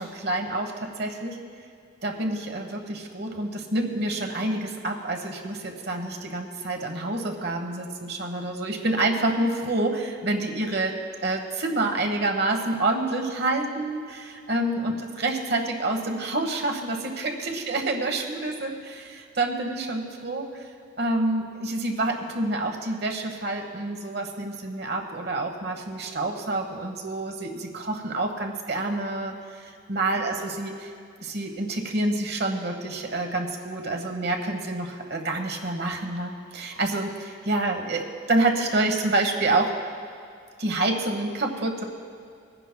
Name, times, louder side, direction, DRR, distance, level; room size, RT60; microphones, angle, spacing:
voice 1, 0.0-1.4 2.0-10.9 11.2-20.6 21.0-30.9 31.2-39.7 40.6-41.8, right 2 dB, 55° right, 3 dB, 1.1 m, -28 dB
22.0 x 10.0 x 2.2 m, 2.2 s
head